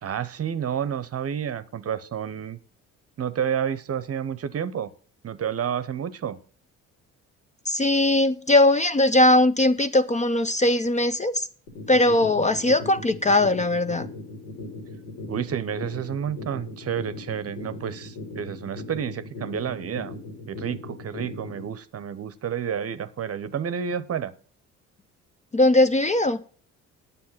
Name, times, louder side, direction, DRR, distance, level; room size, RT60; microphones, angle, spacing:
voice 1, 0.0-2.6 3.2-4.9 5.2-6.4 15.3-20.2 20.5-24.3, right 8 dB, 40° right, 0.8 m, -30 dB
voice 2, 7.7-11.5 11.9-14.1 25.5-26.4, left 1 dB, 20° left, 0.6 m, -20 dB
sound 1, 11.7-21.7, left 2 dB, 75° left, 3.6 m, -38 dB
9.5 x 7.1 x 5.8 m
hypercardioid pair, 55°, 37 cm